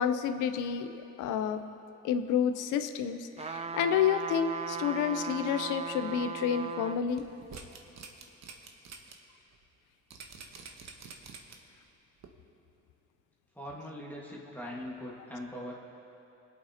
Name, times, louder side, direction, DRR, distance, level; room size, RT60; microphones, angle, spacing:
voice 1, 0.0-1.6 2.0-7.2, left 8 dB, 90° left, 10 dB, 0.6 m, -30 dB
sound 1, 3.4-7.0 7.5-7.6, right 6 dB, 20° right, 0.4 m, -37 dB
sound 2, 7.1-9.1 9.5-9.6 10.1-11.8 12.2-12.3, right 5 dB, 60° right, 1.1 m, -47 dB
voice 2, 13.5-15.7, equal, 5° left, -5 dB, 1.6 m, -41 dB
24.0 x 8.5 x 2.8 m, 3.0 s
cardioid pair, 90°, 30 cm